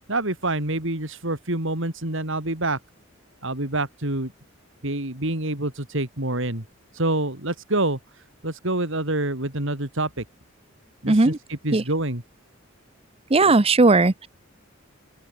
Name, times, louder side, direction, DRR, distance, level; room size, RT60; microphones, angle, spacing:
voice 1, 0.1-2.8 3.4-4.3 4.8-6.6 6.9-8.0 8.4-10.2 11.0-12.2, right 2 dB, 70° right, 4.4 m, -26 dB
voice 2, 11.1-11.4 11.7-11.8 13.3-14.3, right 3 dB, 30° right, 0.8 m, -17 dB
open air
head